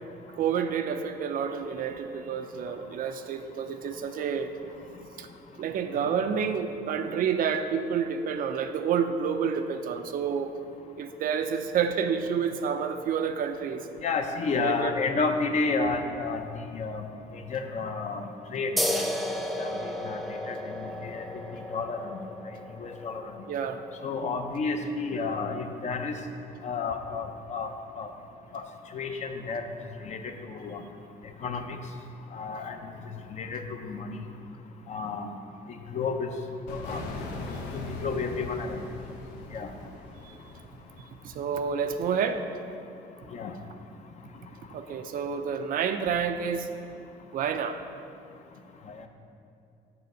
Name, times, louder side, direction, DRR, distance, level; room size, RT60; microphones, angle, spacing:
voice 1, 0.3-4.5 5.2-5.3 5.6-10.5 11.0-13.9 14.5-14.9 23.5-23.8 24.2-24.4 37.5-37.6 40.2-40.4 41.2-42.4 44.7-46.7 47.3-47.8, right 7 dB, 55° right, 8 dB, 0.5 m, -29 dB
voice 2, 14.0-16.4 16.7-17.1 17.3-19.1 19.6-20.2 20.5-21.2 21.5-22.2 22.8-23.2 24.0-26.2 26.6-27.7 28.0-28.1 28.5-28.6 28.9-29.6 30.0-30.8 31.4-31.8 32.3-32.9 33.3-34.3 34.9-35.3 35.9-36.3 36.7-37.0 37.7-38.8 39.5-39.7 43.3-43.5 48.9-49.0, left 4 dB, 45° left, 6 dB, 0.6 m, -31 dB
sound 1, 18.8-25.9, left 1 dB, ahead, 0.5 m, -34 dB
sound 2, 36.7-41.3, left 2 dB, 90° left, 0.8 m, -40 dB
6.8 x 4.0 x 6.4 m, 2.6 s
cardioid pair, 110°, 17 cm